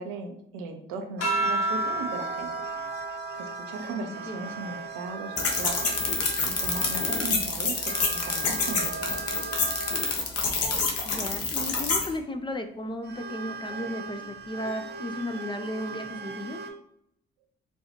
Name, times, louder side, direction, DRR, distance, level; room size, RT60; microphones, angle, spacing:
voice 1, 0.0-2.5 3.4-6.0 6.4-9.1, right 4 dB, 75° right, 5 dB, 0.6 m, -37 dB
sound 1, 1.2-6.0 6.5-8.2 9.4-9.9, right 2 dB, 75° left, 0.9 m, -34 dB
sound 2, 1.2-10.1 11.5-12.1 13.0-16.7, right 4 dB, 35° right, 0.7 m, -39 dB
voice 2, 3.8-4.5 11.0-16.6, left 1 dB, 15° left, 6 dB, 0.4 m, -35 dB
sound 3, 5.4-12.1, left 4 dB, 50° left, 0.9 m, -27 dB
4.2 x 2.3 x 2.8 m, 0.73 s
hypercardioid pair, 40°, 31 cm